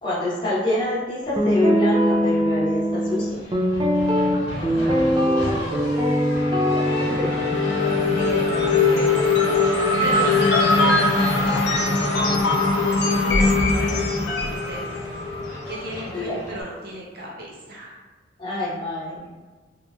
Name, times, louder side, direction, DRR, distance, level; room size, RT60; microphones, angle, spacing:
voice 1, 0.0-3.3 6.5-7.3 16.1-16.4 18.4-19.2, left 1 dB, 25° left, -8 dB, 0.8 m, -26 dB
Guitar, 1.4-9.5, equal, 25° right, 0.3 m, -22 dB
Race car auto racing / Accelerating revving vroom, 1.6-2.6 2.9-16.6, left 1 dB, 85° left, 0.9 m, -26 dB
voice 2, 4.5-5.8 7.9-9.3 9.8-12.4 13.0-15.0 15.7-17.9, equal, 55° right, -3 dB, 0.7 m, -35 dB
sound 1, 7.5-14.7, left 5 dB, 65° left, 0.4 m, -22 dB
2.9 x 2.7 x 2.2 m, 1.2 s
head